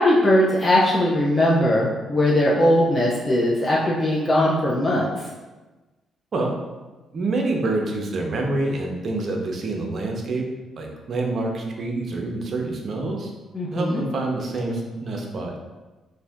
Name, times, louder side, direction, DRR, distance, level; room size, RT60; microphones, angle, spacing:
voice 1, 0.0-5.1 13.5-14.0, left 1 dB, 25° left, -5 dB, 0.5 m, -19 dB
voice 2, 7.1-10.4 10.8-13.3 13.7-15.6, right 2 dB, 50° right, 1 dB, 0.6 m, -26 dB
2.6 x 2.5 x 3.4 m, 1.2 s
cardioid pair, 90°, 0 cm